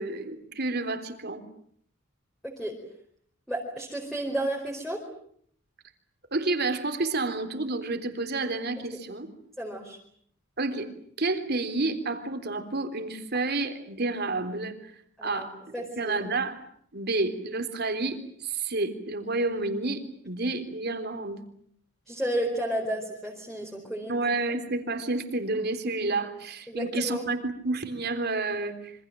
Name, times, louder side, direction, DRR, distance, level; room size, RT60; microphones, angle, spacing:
voice 1, 0.0-1.4 6.3-9.3 10.6-10.9 11.2-14.7 15.2-15.6 16.0-16.6 16.9-21.4 24.1-28.9, right 3 dB, 55° right, 8 dB, 3.6 m, -30 dB
voice 2, 2.4-2.8 3.5-5.0 9.6-10.0 15.2-15.5 15.7-16.2 22.1-24.2 26.7-27.2, right 1 dB, ahead, -1 dB, 4.8 m, -32 dB
27.5 x 25.5 x 7.6 m, 0.65 s
head